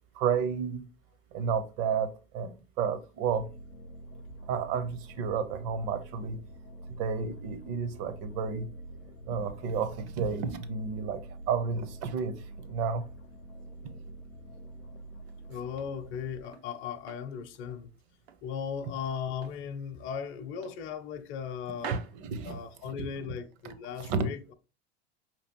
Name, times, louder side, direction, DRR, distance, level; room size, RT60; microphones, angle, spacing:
voice 1, 0.2-0.8 1.3-2.1 2.3-3.4 4.5-6.4 7.0-8.7 9.3-11.2 11.5-12.3 12.7-13.0 21.9-22.6 23.0-23.1 24.0-24.3, right 6 dB, 50° right, 0.8 m, -31 dB
sound 1, 3.3-16.4, right 1 dB, 90° left, 0.7 m, -47 dB
sound 2, 15.2-16.7 17.1-18.5 18.8-19.7 20.0-20.2 20.6-21.5 21.7-23.2, right 7 dB, 80° right, 0.8 m, -46 dB
voice 2, 15.5-17.9 18.4-22.0 22.4-24.4, left 7 dB, 40° left, 0.7 m, -37 dB
5.0 x 3.0 x 2.9 m
hypercardioid pair, 90°, 32 cm